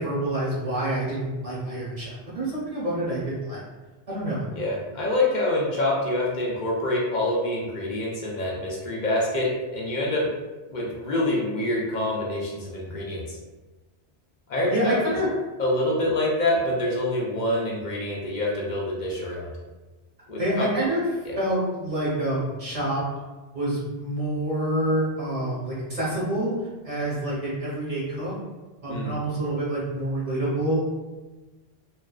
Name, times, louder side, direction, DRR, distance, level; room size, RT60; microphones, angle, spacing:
voice 1, 0.0-3.6 4.1-4.5 14.7-15.3 20.4-21.0 21.4-23.0 23.5-26.5 26.8-28.3 28.8-30.8, right 1 dB, 35° right, -7 dB, 0.9 m, -27 dB
voice 2, 4.5-10.3 10.7-13.4 14.5-14.9 15.6-19.5 20.3-20.7 21.3-21.4 28.9-29.1, left 1 dB, 55° left, -4 dB, 0.6 m, -26 dB
2.4 x 2.3 x 2.2 m, 1.2 s
omnidirectional pair, 1.1 m